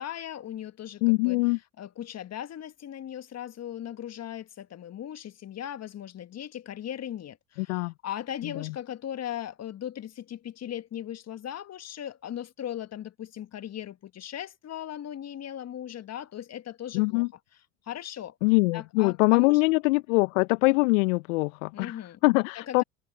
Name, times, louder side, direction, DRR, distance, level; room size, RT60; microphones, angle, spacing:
voice 1, 0.0-1.4 1.8-17.3 17.9-18.4 18.7-19.7 21.7-22.2 22.6-22.8, left 10 dB, 35° left, 1.8 m, -38 dB
voice 2, 1.0-1.6 7.6-7.9 8.6-8.7 16.9-17.3 18.4-21.9 22.2-22.8, left 26 dB, 65° left, 1.2 m, -23 dB
hypercardioid pair, 70°, 42 cm